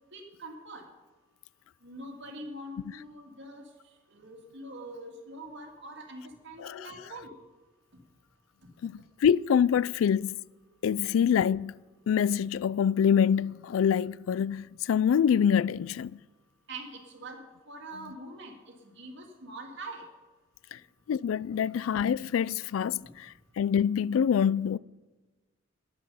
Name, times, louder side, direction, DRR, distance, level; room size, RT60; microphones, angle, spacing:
voice 1, 0.1-0.8 1.8-3.6 4.1-7.3 16.7-17.4 17.7-20.0, right 1 dB, 65° right, 2.3 m, -43 dB
voice 2, 8.8-10.4 10.8-16.2 20.7-20.8 21.1-23.0 23.6-24.8, left 8 dB, 85° left, 0.3 m, -25 dB
13.5 x 10.5 x 5.6 m
head